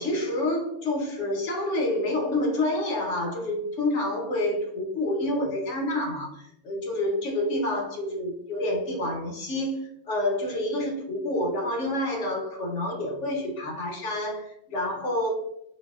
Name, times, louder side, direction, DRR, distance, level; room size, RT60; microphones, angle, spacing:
voice 1, 0.0-15.3, left 1 dB, 70° left, 1 dB, 1.0 m, -28 dB
3.9 x 2.0 x 2.3 m, 0.79 s
omnidirectional pair, 1.3 m